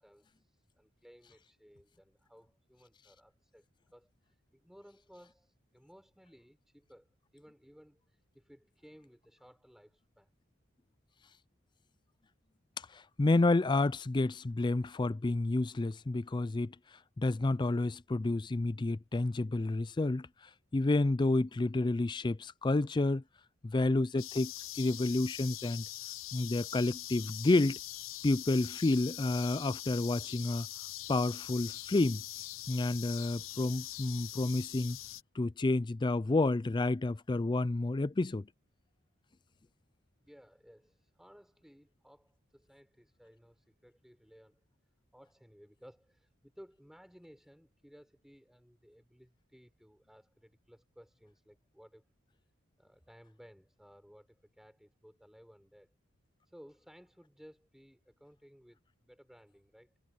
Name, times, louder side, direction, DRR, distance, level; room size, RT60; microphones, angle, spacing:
voice 1, 0.0-10.3 40.2-44.6 45.1-52.0 52.8-55.9 56.4-60.0, equal, ahead, 4.5 m, -59 dB
voice 2, 12.9-16.8 17.2-20.3 20.7-23.2 23.6-24.5 24.8-25.8 26.3-27.8 28.2-30.7 31.1-32.2 32.7-35.0 35.4-38.5, left 2 dB, 20° left, 0.4 m, -30 dB
sound 1, 24.2-35.2, left 15 dB, 85° left, 0.7 m, -43 dB
head